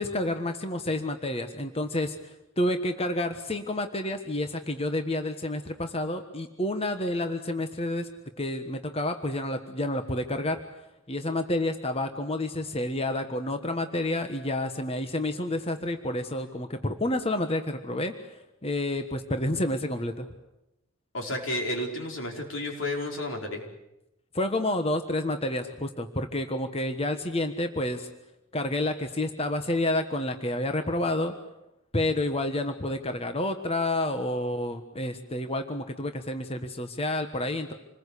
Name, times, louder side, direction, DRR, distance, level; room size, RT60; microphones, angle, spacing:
voice 1, 0.0-8.1 8.4-10.6 11.1-18.1 18.6-20.3 24.3-28.1 28.5-31.3 31.9-37.7, left 1 dB, 30° left, 7 dB, 1.3 m, -29 dB
voice 2, 21.1-23.6, left 1 dB, 65° left, 2 dB, 4.8 m, -31 dB
27.5 x 20.5 x 8.4 m, 0.92 s
head